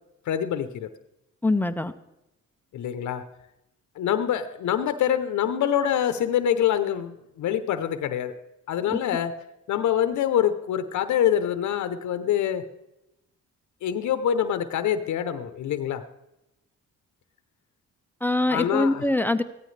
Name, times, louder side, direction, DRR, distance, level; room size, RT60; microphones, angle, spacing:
voice 1, 0.3-0.9 2.7-3.2 4.0-8.3 8.7-9.3 9.7-12.6 13.8-16.0 18.5-19.0, left 10 dB, 70° left, 10 dB, 0.9 m, -25 dB
voice 2, 1.4-1.9 8.9-9.0 18.2-19.4, left 2 dB, 5° left, 10 dB, 0.6 m, -23 dB
15.5 x 13.5 x 3.3 m, 0.90 s
cardioid pair, 90°, 30 cm